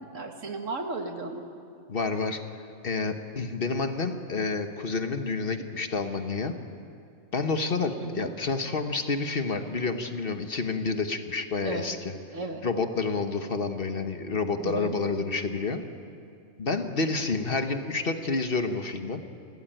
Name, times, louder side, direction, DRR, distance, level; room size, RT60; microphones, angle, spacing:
voice 1, 0.0-1.5 8.0-8.3 11.6-11.9 12.3-12.6 14.6-15.0, right 3 dB, 75° right, 5 dB, 2.0 m, -35 dB
voice 2, 1.9-2.4 2.8-6.5 7.3-12.1 12.6-15.8 16.6-19.2, left 4 dB, 45° left, 7 dB, 1.4 m, -29 dB
29.0 x 13.5 x 9.1 m, 2.4 s
omnidirectional pair, 1.3 m